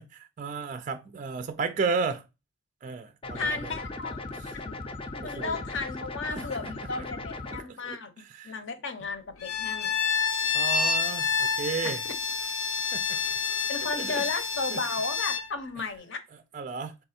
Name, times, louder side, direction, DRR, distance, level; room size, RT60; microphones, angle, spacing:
voice 1, 0.0-2.2 2.8-3.8 5.2-5.6 6.3-6.5 7.5-8.6 10.5-12.0 12.9-13.4 14.0-14.3 14.7-14.8 16.5-17.0, right 5 dB, 35° right, 0.3 m, -33 dB
sound 1, 3.2-7.6, left 2 dB, 25° left, 0.4 m, -38 dB
voice 2, 3.3-4.2 4.5-4.8 5.1-8.1 8.4-10.0 11.8-12.1 13.7-16.2, left 4 dB, 60° left, 0.8 m, -34 dB
Bowed string instrument, 9.4-15.5, left 5 dB, 85° left, 1.1 m, -28 dB
3.8 x 3.3 x 4.2 m
head